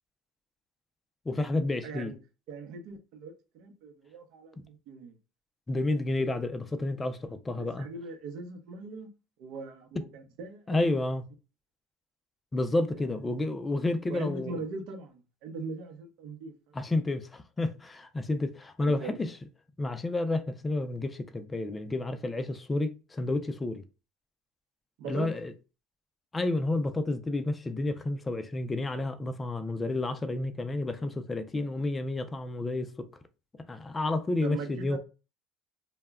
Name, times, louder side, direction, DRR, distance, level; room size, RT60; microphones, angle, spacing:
voice 1, 1.3-2.1 5.7-7.9 10.7-11.2 12.5-14.6 16.7-19.4 19.8-23.8 25.1-25.5 26.3-33.1 33.7-35.0, left 2 dB, 20° left, 0.3 m, -30 dB
voice 2, 1.8-2.2 2.5-5.1 7.6-9.1 9.4-11.0 12.9-13.1 14.1-16.8 18.8-19.2 25.0-25.3 34.4-35.0, right 4 dB, 70° right, 0.6 m, -40 dB
2.1 x 2.0 x 3.4 m
supercardioid pair, 100°, 0 cm